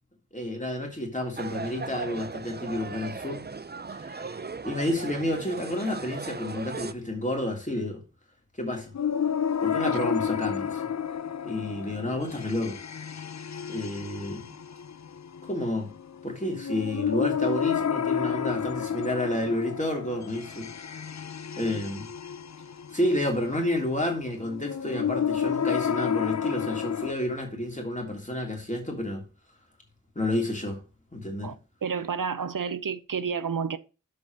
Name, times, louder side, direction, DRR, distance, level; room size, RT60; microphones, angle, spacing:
voice 1, 0.3-3.4 3.9-4.4 4.6-8.0 8.6-8.9 9.6-10.8 11.4-12.8 13.7-14.6 15.4-15.9 16.2-21.0 21.6-22.1 22.9-29.2 30.1-30.8 31.1-31.5, left 1 dB, 25° left, 3.0 m, -30 dB
sound 1, 1.4-6.9, right 4 dB, 30° right, 0.6 m, -37 dB
sound 2, 8.9-27.1, left 8 dB, 55° left, 0.6 m, -31 dB
voice 2, 31.4-33.8, right 6 dB, 75° right, 0.7 m, -30 dB
6.7 x 5.2 x 6.6 m
wide cardioid pair, 55°, 33 cm